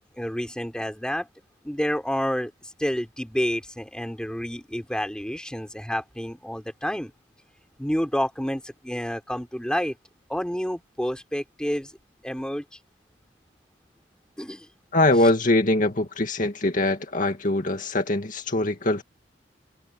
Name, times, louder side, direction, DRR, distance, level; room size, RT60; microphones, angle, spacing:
voice 1, 0.2-1.3 1.6-7.1 7.8-10.0 10.3-12.0 12.2-12.6 14.4-14.7, equal, 5° left, 3.8 m, -29 dB
voice 2, 14.9-19.0, left 2 dB, 50° left, 2.1 m, -22 dB
head